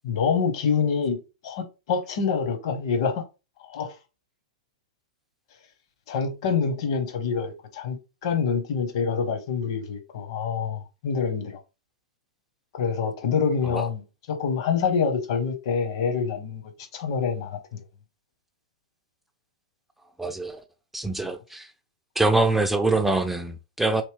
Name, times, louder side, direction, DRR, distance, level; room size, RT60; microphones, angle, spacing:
voice 1, 0.0-1.2 1.4-3.2 3.6-3.9 6.1-11.6 12.7-17.8, left 6 dB, 55° left, 1.0 m, -26 dB
voice 2, 20.2-20.6 20.9-21.7 22.2-24.0, right 2 dB, 5° right, 0.4 m, -24 dB
3.2 x 2.7 x 3.3 m
figure-of-eight pair, 105°, 3 cm